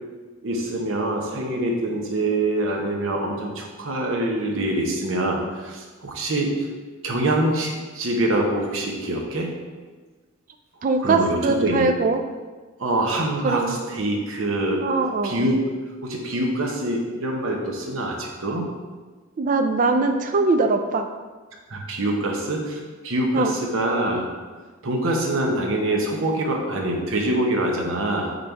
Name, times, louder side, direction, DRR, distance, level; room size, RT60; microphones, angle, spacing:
voice 1, 0.4-6.7 7.0-9.5 11.0-11.9 12.8-14.8 15.2-15.8 16.0-18.7 21.7-24.3 24.8-28.4, right 1 dB, 70° right, 0 dB, 0.9 m, -25 dB
voice 2, 10.8-12.2 13.4-13.8 14.8-15.5 19.4-21.1 23.3-23.6, right 3 dB, 40° right, 6 dB, 0.3 m, -21 dB
5.2 x 3.9 x 4.6 m, 1.4 s
head